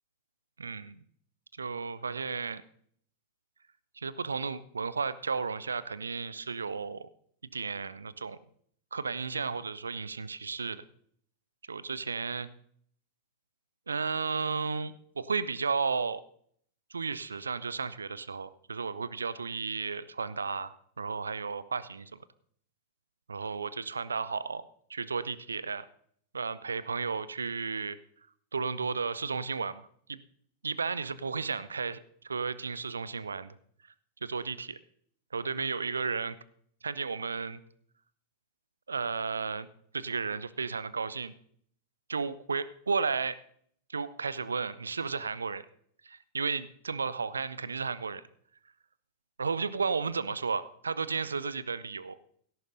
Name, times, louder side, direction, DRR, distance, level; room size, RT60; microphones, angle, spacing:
voice 1, 0.6-1.0 1.6-2.6 4.0-7.1 7.5-8.4 8.9-10.8 11.7-12.5 13.9-16.2 16.9-22.2 23.3-24.6 24.9-25.9 26.3-28.0 28.5-30.2 30.6-33.6 34.2-34.8 35.3-36.4 36.8-37.6 38.9-39.7 39.9-41.3 42.1-43.4 43.9-45.7 46.0-48.2 49.4-52.2, right 5 dB, 75° right, 17 dB, 0.5 m, -33 dB
16.5 x 13.5 x 2.6 m, 0.63 s
figure-of-eight pair, 90°, 0 cm